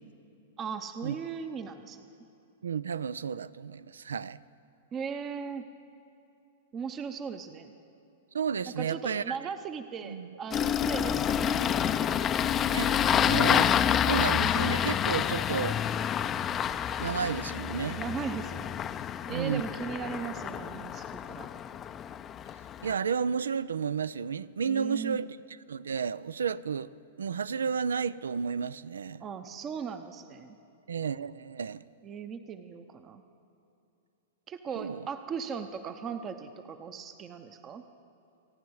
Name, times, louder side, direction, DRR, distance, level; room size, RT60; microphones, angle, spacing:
voice 1, 0.6-2.1 4.9-5.6 6.7-7.7 8.6-12.5 18.0-18.7 19.3-21.5 24.6-25.2 29.2-30.6 32.0-33.2 34.5-37.8, right 6 dB, 30° right, 0.7 m, -38 dB
voice 2, 2.6-4.4 8.3-9.4 10.0-10.3 12.7-13.7 14.0-15.8 17.0-18.0 19.3-19.6 22.8-25.4 25.7-26.9 27.2-29.2 30.9-31.8 34.8-35.0, right 6 dB, 90° right, 0.4 m, -32 dB
Engine starting, 10.5-22.9, left 9 dB, 25° left, 0.5 m, -28 dB
28.0 x 9.4 x 4.7 m
hypercardioid pair, 120°, 0 cm